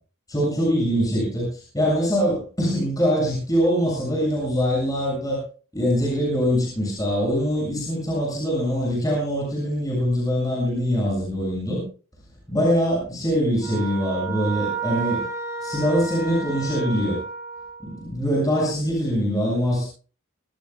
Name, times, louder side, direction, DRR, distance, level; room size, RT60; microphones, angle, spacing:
voice 1, 0.3-5.4 5.7-11.8 12.5-15.2 15.6-17.2 17.8-19.9, equal, 15° left, -3 dB, 7.2 m, -23 dB
sound 1, 13.6-18.0, right 4 dB, 15° right, 4.2 m, -32 dB
25.0 x 15.5 x 2.4 m, 0.38 s
head